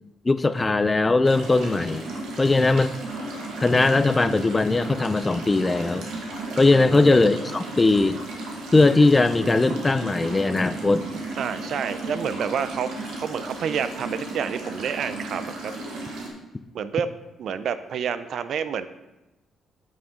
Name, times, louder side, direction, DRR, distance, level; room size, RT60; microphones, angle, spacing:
voice 1, 0.2-2.1 2.4-3.0 3.6-6.1 6.6-8.2 8.7-11.1, left 3 dB, 20° left, 13 dB, 0.4 m, -19 dB
sound 1, 1.2-16.3, right 2 dB, 85° right, 1.7 m, -35 dB
voice 2, 6.5-7.0 11.4-12.9 13.2-15.7 16.7-17.1 17.4-18.9, right 7 dB, 65° right, 13 dB, 0.4 m, -29 dB
8.6 x 6.2 x 3.7 m, 1.0 s
cardioid pair, 90°, 0 cm